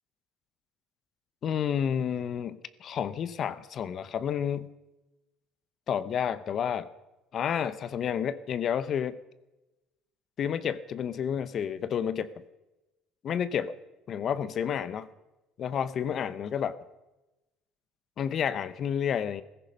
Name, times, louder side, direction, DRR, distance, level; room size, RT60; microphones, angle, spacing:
voice 1, 1.4-4.7 5.9-6.9 7.3-9.2 10.4-12.3 13.2-13.7 14.1-15.1 15.6-16.8 18.2-19.4, left 8 dB, 50° left, 15 dB, 0.9 m, -30 dB
15.5 x 14.5 x 5.5 m, 1.0 s
supercardioid pair, 75°, 0 cm